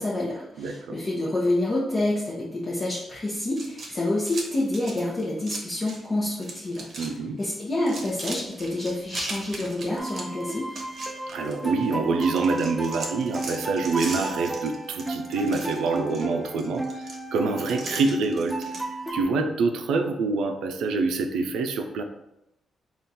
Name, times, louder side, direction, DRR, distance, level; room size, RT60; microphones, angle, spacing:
voice 1, 0.0-6.9 7.4-10.7, left 1 dB, 35° left, -6 dB, 0.8 m, -28 dB
voice 2, 0.6-1.0 7.0-7.4 11.3-18.6 19.1-22.0, right 4 dB, 90° right, 6 dB, 0.4 m, -26 dB
sound 1, 3.5-6.1 6.3-7.1 7.4-11.9 12.2-18.8, right 2 dB, 50° right, 0.8 m, -39 dB
sound 2, 10.0-19.2, right 2 dB, ahead, 0.5 m, -34 dB
3.6 x 2.4 x 4.1 m, 0.89 s
cardioid pair, 95°, 0 cm